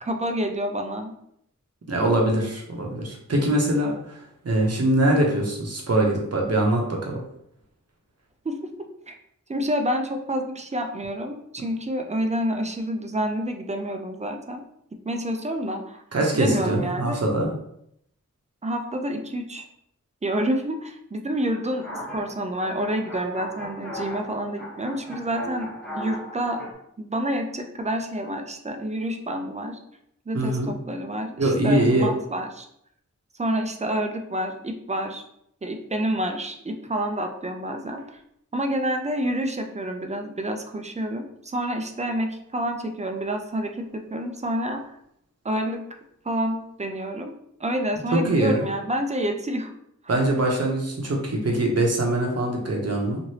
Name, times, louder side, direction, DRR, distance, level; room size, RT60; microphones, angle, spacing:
voice 1, 0.0-1.1 8.4-8.6 9.1-9.2 9.5-14.6 15.1-16.0 16.3-17.2 18.6-19.6 20.2-21.8 22.1-26.6 27.0-29.8 30.3-32.7 33.4-35.2 35.6-38.2 38.5-43.8 44.1-44.9 45.4-45.8 46.2-47.3 47.6-49.7, right 1 dB, 25° right, 4 dB, 0.4 m, -28 dB
voice 2, 1.9-7.2 16.1-17.5 30.3-30.7 31.4-32.1 48.1-48.6 50.1-53.2, right 1 dB, 55° right, 0 dB, 0.8 m, -23 dB
sound 1, 21.7-26.7, left 1 dB, 5° left, 0.9 m, -37 dB
3.1 x 2.5 x 2.8 m, 0.74 s
wide cardioid pair, 80°, 30 cm